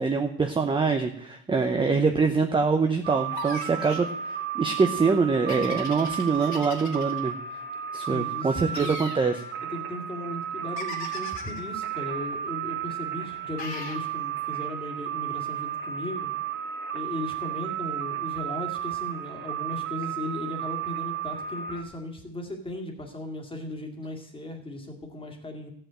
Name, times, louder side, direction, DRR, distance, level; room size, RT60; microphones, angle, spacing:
voice 1, 0.0-7.4 7.9-9.4, right 4 dB, 15° right, 5 dB, 0.7 m, -24 dB
sound 1, 3.0-21.8, right 10 dB, 30° right, 1.9 m, -33 dB
sound 2, 3.3-4.1 5.5-7.2 8.7-9.2 10.8-11.6 13.6-14.0, left 4 dB, 50° left, 2.4 m, -39 dB
voice 2, 8.1-9.0 9.7-16.3 16.9-25.7, left 1 dB, 15° left, 3 dB, 2.2 m, -37 dB
14.5 x 5.5 x 8.7 m, 0.69 s
cardioid pair, 140°, 37 cm